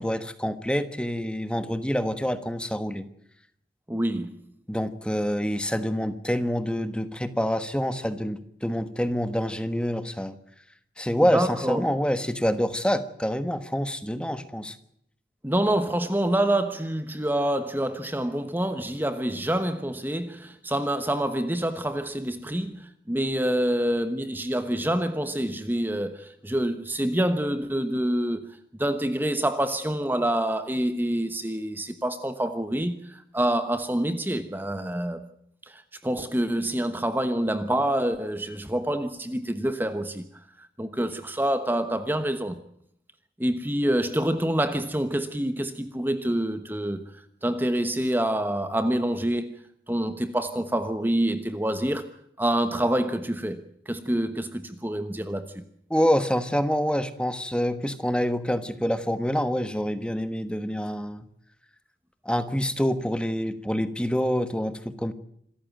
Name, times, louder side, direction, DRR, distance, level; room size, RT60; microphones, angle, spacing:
voice 1, 0.0-3.1 4.7-10.4 11.0-14.8 55.9-61.2 62.2-65.1, equal, 5° left, 1.3 m, -26 dB
voice 2, 3.9-4.4 11.3-11.8 15.4-28.5 28.8-35.2 35.6-40.2 40.6-42.6 43.4-47.0 47.4-49.5 49.9-52.1 52.4-55.6, right 1 dB, 10° right, 1.1 m, -27 dB
27.0 x 14.0 x 9.2 m
head